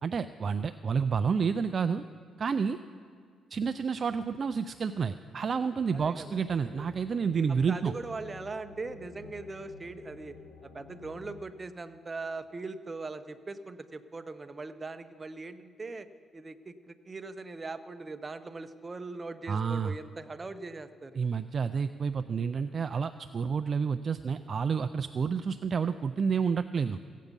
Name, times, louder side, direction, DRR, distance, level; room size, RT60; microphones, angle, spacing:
voice 1, 0.0-2.0 2.4-2.8 3.5-7.9 19.5-19.9 21.2-27.0, right 6 dB, 45° right, 10 dB, 0.3 m, -29 dB
voice 2, 5.9-6.4 7.5-10.4 10.6-16.1 16.3-21.2, right 3 dB, 25° right, 10 dB, 0.7 m, -40 dB
sound 1, 6.2-11.4, left 4 dB, 90° left, 1.8 m, -50 dB
16.0 x 8.3 x 5.3 m, 2.2 s
cardioid pair, 90°, 0 cm